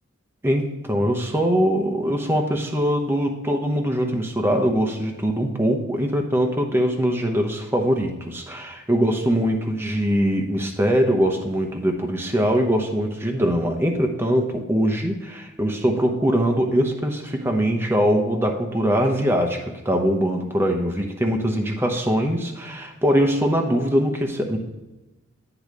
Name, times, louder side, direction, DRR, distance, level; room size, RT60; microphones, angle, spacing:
voice 1, 0.4-24.6, equal, 10° right, 3 dB, 0.9 m, -22 dB
10.5 x 3.9 x 4.8 m, 1.1 s
head